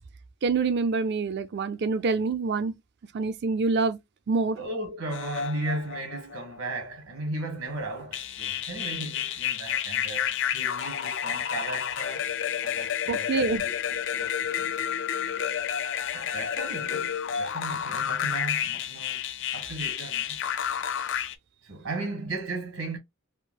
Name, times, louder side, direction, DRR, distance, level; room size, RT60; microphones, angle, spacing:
voice 1, 0.4-2.7 3.1-4.0 4.3-4.6 13.1-13.6, right 4 dB, 55° right, 0.5 m, -26 dB
voice 2, 4.5-12.3 12.6-13.4 13.6-14.7 16.1-19.2 19.5-20.4 21.6-23.0, right 2 dB, 80° right, 1.5 m, -36 dB
sound 1, 5.1-6.8 7.5-21.3, left 9 dB, 60° left, 0.4 m, -30 dB
4.4 x 2.0 x 2.2 m
head